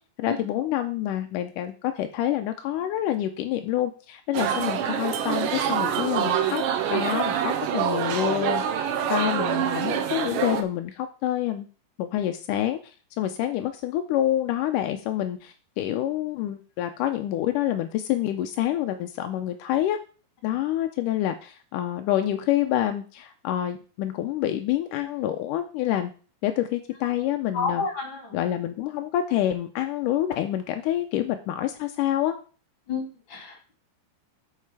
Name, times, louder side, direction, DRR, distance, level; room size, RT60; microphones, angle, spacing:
voice 1, 0.2-6.6 6.9-11.7 12.0-20.0 20.4-26.1 26.4-27.9 28.3-32.4, left 12 dB, 85° left, 7 dB, 1.9 m, -27 dB
sound 1, 4.3-10.6, right 9 dB, 70° right, 2.3 m, -26 dB
voice 2, 27.5-28.4 32.9-33.7, left 4 dB, 35° left, 3 dB, 3.1 m, -30 dB
8.5 x 6.6 x 4.8 m, 0.37 s
omnidirectional pair, 4.4 m